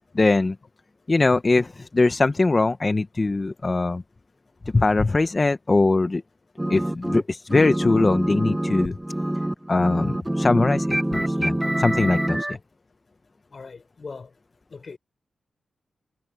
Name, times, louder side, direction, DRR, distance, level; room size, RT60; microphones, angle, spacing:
voice 1, 0.1-0.5 1.1-4.0 4.7-6.2 6.7-9.0 9.7-12.6, left 3 dB, 35° left, 1.1 m, -21 dB
sound 1, 6.6-7.2 7.5-12.6, right 1 dB, 10° right, 1.0 m, -25 dB
voice 2, 13.5-14.3 14.7-15.0, left 4 dB, 55° left, 5.6 m, -40 dB
cardioid pair, 50°, 0 cm